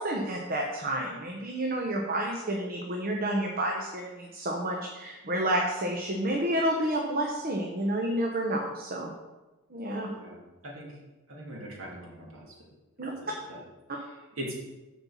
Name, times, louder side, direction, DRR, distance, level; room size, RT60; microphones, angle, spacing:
voice 1, 0.0-9.1 9.7-10.1 13.0-13.1, right 1 dB, 40° right, 0 dB, 1.0 m, -30 dB
voice 2, 10.0-11.0 11.3-12.6 13.0-13.6 13.9-14.5, right 1 dB, 65° right, -3 dB, 2.6 m, -42 dB
8.1 x 4.4 x 7.2 m, 1.1 s
head